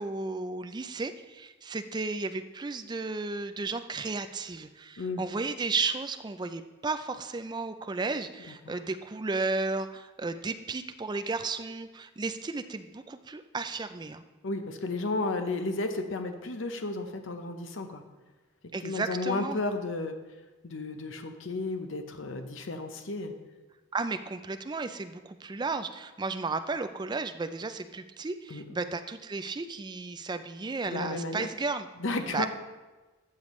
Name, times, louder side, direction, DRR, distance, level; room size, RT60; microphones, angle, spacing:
voice 1, 0.0-14.2 18.7-19.6 23.9-31.9 32.3-32.5, right 3 dB, 20° right, 9 dB, 0.4 m, -34 dB
voice 2, 14.4-18.0 18.8-20.2 20.6-23.3 28.5-28.6 30.9-31.5 32.0-32.5, left 2 dB, 80° left, 6 dB, 0.8 m, -33 dB
13.0 x 7.0 x 3.2 m, 1.2 s
head